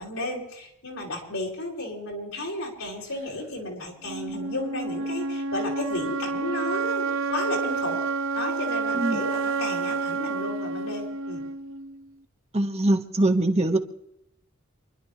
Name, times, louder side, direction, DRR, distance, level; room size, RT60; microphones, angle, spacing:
voice 1, 0.0-8.0 8.4-11.4, left 1 dB, 80° left, -2 dB, 5.5 m, -33 dB
sound 1, 4.1-12.0, right 4 dB, 70° right, 0.8 m, -29 dB
voice 2, 12.5-13.8, right 1 dB, 30° right, 4 dB, 1.3 m, -22 dB
28.5 x 11.5 x 3.2 m, 0.77 s
head